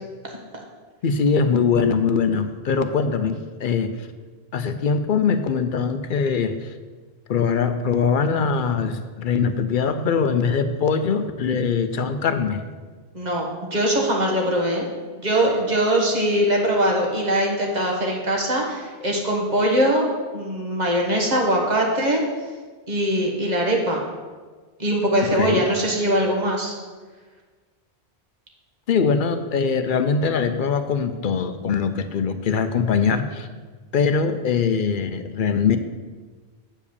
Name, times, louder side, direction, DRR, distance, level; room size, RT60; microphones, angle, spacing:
voice 1, 1.0-4.0 4.5-6.7 7.3-12.6 25.3-25.6 28.9-33.5 33.9-35.8, left 5 dB, 60° left, 9 dB, 0.7 m, -22 dB
voice 2, 13.1-14.9 15.2-20.1 20.3-22.2 22.9-24.0 24.8-26.7, right 1 dB, 40° right, 0 dB, 1.5 m, -21 dB
8.0 x 4.9 x 6.9 m, 1.4 s
omnidirectional pair, 1.1 m